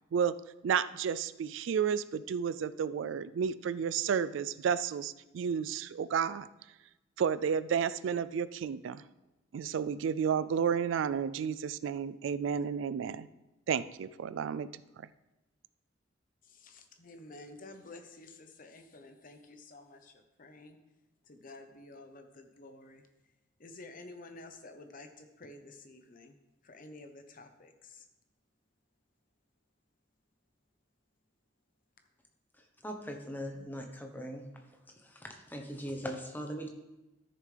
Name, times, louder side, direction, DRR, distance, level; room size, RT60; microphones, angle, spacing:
voice 1, 0.6-6.5 7.2-9.0 9.5-13.3 13.7-14.7, right 7 dB, 75° right, 15 dB, 0.3 m, -31 dB
voice 2, 16.4-20.8 21.3-23.0 23.6-26.4 26.6-28.1, left 2 dB, 45° left, 6 dB, 0.8 m, -51 dB
voice 3, 32.8-34.5 35.0-36.7, equal, 10° left, 3 dB, 1.0 m, -40 dB
14.0 x 6.7 x 3.3 m, 1.0 s
head